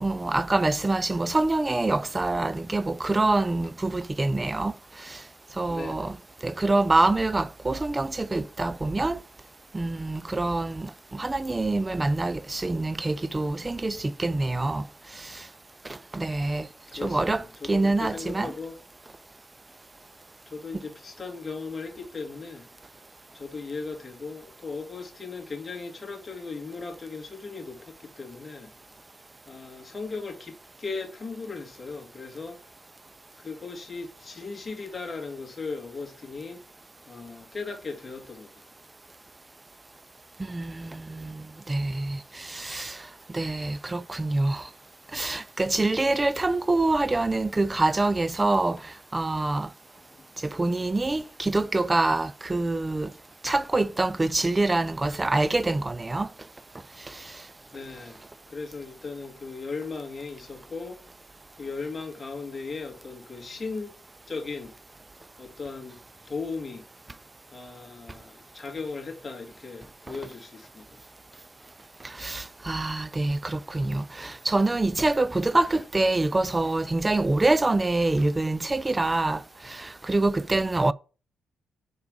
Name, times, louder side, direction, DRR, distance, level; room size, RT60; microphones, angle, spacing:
voice 1, 0.0-4.7 5.0-5.2 5.6-6.1 6.4-9.2 9.7-14.9 15.2-15.4 15.9-16.7 17.0-17.4 17.7-18.5 40.4-43.0 43.3-44.7 45.1-49.7 50.4-53.1 53.4-56.3 57.1-57.2 72.0-80.9, right 2 dB, 20° right, 0.3 m, -26 dB
voice 2, 5.7-6.2 16.9-18.8 20.5-22.7 23.3-28.7 29.5-32.6 33.4-36.6 37.1-38.5 42.7-42.8 45.5-45.7 48.8-48.9 49.9-50.3 53.4-53.6 57.7-58.2 58.5-61.0 61.6-63.9 64.3-64.7 65.4-66.0 66.2-66.8 67.5-71.0 74.0-74.1 75.6-75.8 78.1-78.3 78.7-79.0, left 4 dB, 30° left, 1.6 m, -37 dB
4.8 x 4.7 x 5.0 m
cardioid pair, 90°, 0 cm